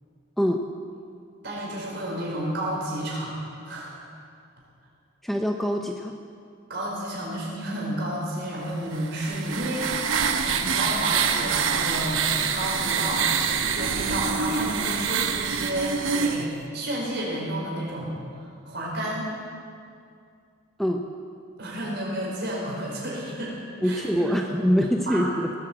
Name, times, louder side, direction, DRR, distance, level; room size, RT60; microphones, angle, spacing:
voice 1, 1.4-3.3 3.6-4.0 6.7-10.1 10.4-12.3 12.5-13.3 13.6-19.3 21.6-23.5 23.8-24.6 25.1-25.3, right 1 dB, 55° right, -4 dB, 5.1 m, -31 dB
voice 2, 5.2-6.2 20.8-21.1 23.8-25.5, equal, ahead, 2 dB, 0.6 m, -24 dB
sound 1, 8.9-16.5, right 6 dB, 75° right, 1.0 m, -26 dB
19.0 x 8.7 x 7.6 m, 2.3 s
head